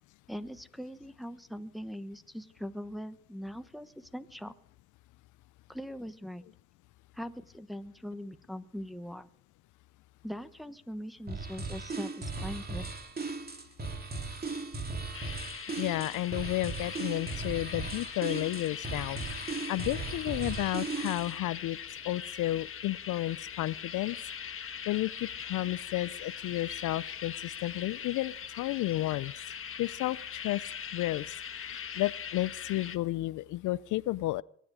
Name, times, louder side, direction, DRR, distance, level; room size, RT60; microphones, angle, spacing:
voice 1, 0.3-4.5 5.7-6.4 7.1-9.3 10.2-12.8, equal, ahead, 1.1 m, -41 dB
sound 1, 11.3-21.4, right 3 dB, 30° right, 2.6 m, -37 dB
sound 2, 15.1-33.0, left 8 dB, 45° left, 1.3 m, -41 dB
voice 2, 15.8-21.8 22.1-24.5 24.9-29.3 29.8-30.6 30.9-34.4, left 16 dB, 80° left, 0.5 m, -32 dB
23.0 x 10.0 x 4.9 m
cardioid pair, 90°, 30 cm